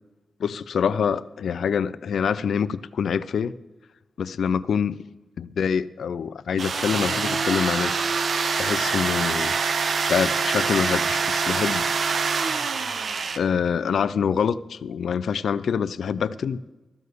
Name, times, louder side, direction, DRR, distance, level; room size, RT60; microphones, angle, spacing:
voice 1, 0.4-3.5 4.2-5.0 5.4-8.0 8.6-9.5 10.0-11.8 13.4-16.6, left 7 dB, 85° left, 17 dB, 0.4 m, -25 dB
sound 1, 6.6-13.4, right 5 dB, 55° right, 0.6 m, -25 dB
13.5 x 6.7 x 6.7 m, 1.1 s
wide cardioid pair, 180°, 0 cm